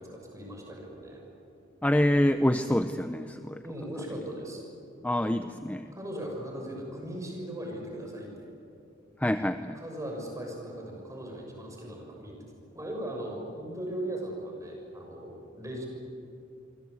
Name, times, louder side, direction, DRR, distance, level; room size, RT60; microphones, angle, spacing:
voice 1, 0.1-1.2 3.6-4.6 5.4-5.6 5.9-8.5 9.7-12.4 12.7-15.9, right 1 dB, 15° right, 0 dB, 6.8 m, -38 dB
voice 2, 1.8-3.6 5.0-5.9 9.2-9.8, left 1 dB, 10° left, 9 dB, 0.6 m, -26 dB
27.0 x 24.5 x 8.3 m, 2.6 s
head